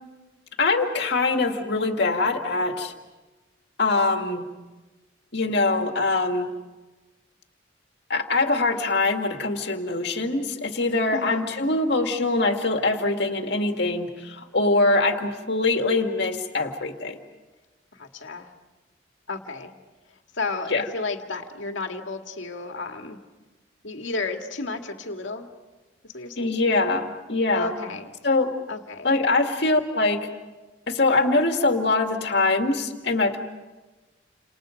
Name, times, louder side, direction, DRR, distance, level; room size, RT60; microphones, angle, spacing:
voice 1, 0.6-2.9 3.8-4.4 5.3-6.5 8.1-14.1 14.5-17.2 20.7-20.8 26.4-27.7 28.2-28.5 29.0-30.3 30.9-33.4, left 3 dB, 60° left, 4 dB, 2.2 m, -23 dB
voice 2, 11.1-11.5 18.0-18.5 19.3-19.7 20.3-23.2 23.8-25.5 26.0-26.6 27.5-28.1 28.7-29.2, left 3 dB, 75° left, 4 dB, 2.1 m, -32 dB
29.5 x 27.5 x 5.2 m, 1.2 s
head